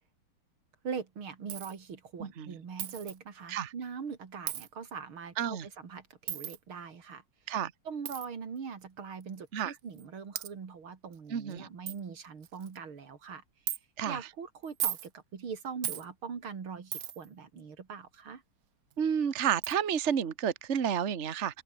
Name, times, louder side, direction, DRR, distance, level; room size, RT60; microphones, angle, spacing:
voice 1, 0.8-7.2 7.9-13.4 14.1-18.4, right 6 dB, 90° right, 3.5 m, -42 dB
Coin (dropping), 1.5-1.8 2.8-3.2 4.5-4.7 6.3-6.6 8.1-8.3 9.2-9.3 10.0-10.1 10.4-10.5 11.1-11.2 11.5-11.6 11.9-12.0 12.4-12.8 13.7-13.8 14.6-15.1 15.8-16.1 16.9-17.3 18.9-19.0 19.6-19.8, right 11 dB, 55° right, 1.1 m, -36 dB
voice 2, 2.2-2.5 3.5-3.7 5.4-5.6 7.5-7.7 9.5-9.7 11.3-11.7 14.0-14.2 19.0-21.6, right 8 dB, 40° right, 1.5 m, -30 dB
omnidirectional pair, 2.2 m